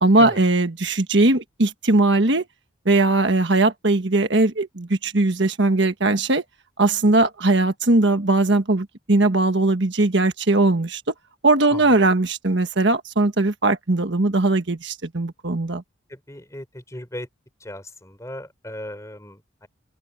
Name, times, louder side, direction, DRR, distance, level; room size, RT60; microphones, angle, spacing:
voice 1, 0.0-2.4 2.8-6.4 6.8-11.1 11.4-15.8, right 2 dB, 60° right, 1.4 m, -19 dB
voice 2, 16.1-17.3 17.6-19.7, left 1 dB, 15° left, 4.1 m, -37 dB
open air
head